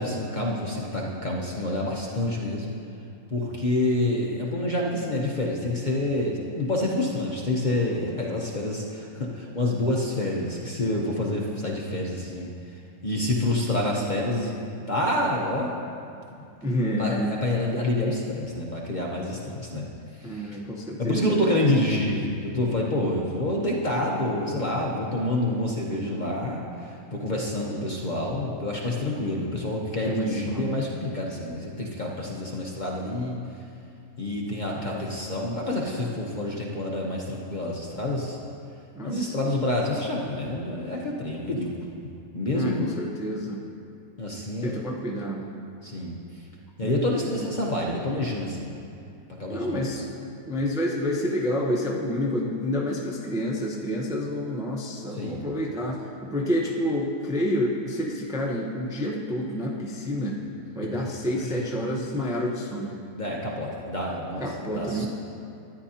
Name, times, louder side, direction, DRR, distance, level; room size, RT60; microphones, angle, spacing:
voice 1, 0.0-2.7 3.3-12.5 13.0-14.6 14.9-15.7 17.0-20.6 21.0-33.4 34.2-38.4 39.0-42.9 44.2-44.8 45.8-46.2 46.8-48.8 49.4-49.9 55.1-55.4 61.4-61.6 63.1-65.1, left 1 dB, 40° left, -3 dB, 0.8 m, -28 dB
voice 2, 16.6-17.3 20.2-21.3 30.0-30.8 34.8-34.9 39.0-39.6 42.5-43.6 44.6-45.5 46.8-47.4 49.5-50.1 50.4-60.4 60.7-62.9 64.4-65.1, equal, 5° right, -3 dB, 0.5 m, -29 dB
13.0 x 9.7 x 2.8 m, 2.5 s
omnidirectional pair, 1.7 m